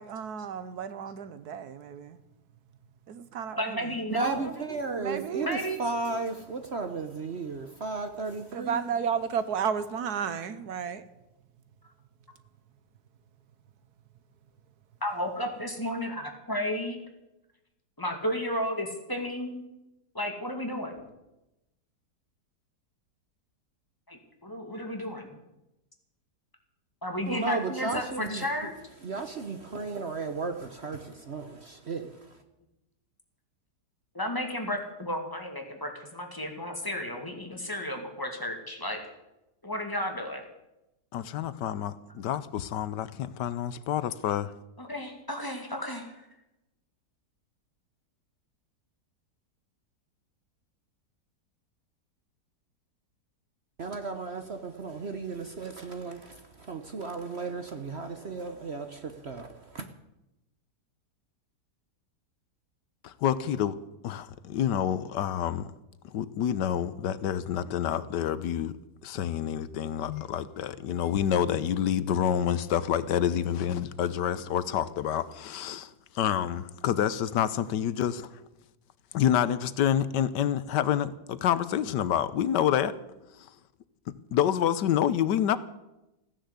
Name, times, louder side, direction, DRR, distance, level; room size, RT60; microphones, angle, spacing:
voice 1, 0.0-2.2 3.1-4.0 5.0-5.5 8.5-11.0, right 7 dB, 70° right, 1.4 m, -33 dB
voice 2, 3.6-4.5 5.4-5.8 15.0-17.0 18.0-19.6 20.2-21.1 24.1-25.3 27.0-28.7 34.2-39.0 39.6-40.4 44.8-46.1, left 1 dB, 10° left, 2.2 m, -33 dB
voice 3, 4.1-8.8 27.3-28.4 29.0-32.1 53.8-59.8, right 3 dB, 45° right, 1.1 m, -34 dB
voice 4, 41.1-44.5 63.0-63.7 64.0-65.7 66.1-68.7 69.0-75.9 76.2-78.3 79.1-82.9 84.3-85.6, left 10 dB, 85° left, 1.4 m, -28 dB
15.5 x 10.0 x 8.2 m
omnidirectional pair, 1.8 m